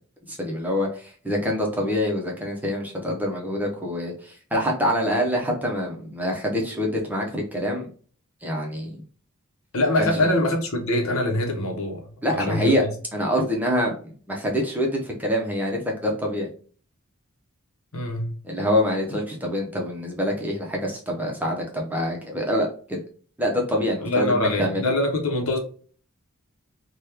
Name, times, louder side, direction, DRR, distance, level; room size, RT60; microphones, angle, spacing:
voice 1, 0.3-7.9 8.4-9.0 10.0-10.3 12.2-12.8 13.1-13.9 14.3-16.5 18.4-23.0 23.4-24.8, equal, 10° right, 0.6 m, -25 dB
voice 2, 9.7-12.9 17.9-18.4 24.0-25.6, left 1 dB, 70° left, 0.9 m, -24 dB
3.0 x 2.2 x 3.4 m
head